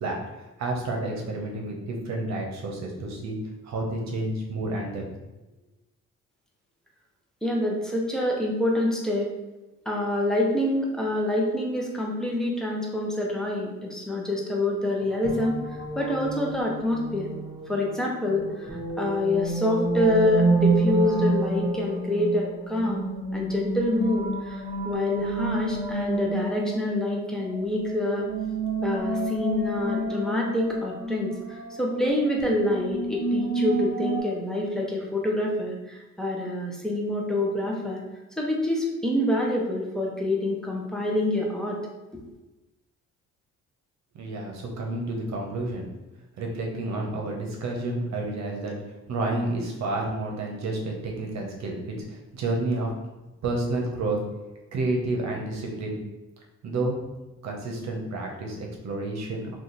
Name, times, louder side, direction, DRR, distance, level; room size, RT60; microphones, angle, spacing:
voice 1, 0.0-3.4 3.6-5.0 44.1-45.9 46.4-48.8 49.1-52.9 53.4-54.2 54.7-56.0 56.6-57.0 57.4-59.5, right 2 dB, 65° right, 0 dB, 0.9 m, -30 dB
voice 2, 7.4-9.3 9.9-15.6 15.9-17.3 17.7-23.1 23.3-28.3 28.8-38.0 38.4-41.8, left 1 dB, ahead, -2 dB, 0.8 m, -26 dB
sound 1, 15.0-34.2, right 2 dB, 25° right, 1.0 m, -29 dB
2.8 x 2.5 x 3.9 m, 1.1 s
cardioid pair, 90°, 30 cm